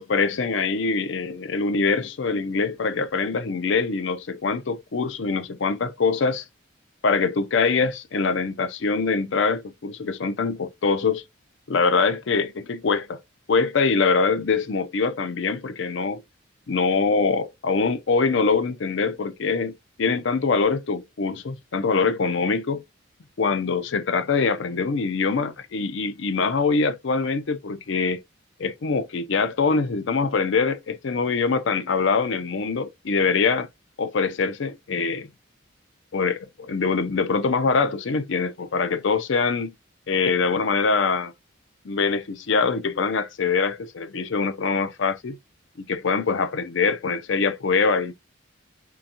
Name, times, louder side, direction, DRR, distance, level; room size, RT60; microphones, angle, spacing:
voice 1, 0.0-6.4 7.0-11.2 11.7-13.2 13.5-16.2 16.7-19.7 20.0-22.8 23.4-28.2 28.6-33.7 34.0-35.3 36.1-39.7 40.1-41.3 41.8-45.4 45.8-48.2, left 4 dB, 65° left, 0.5 m, -23 dB
3.8 x 3.4 x 2.7 m
head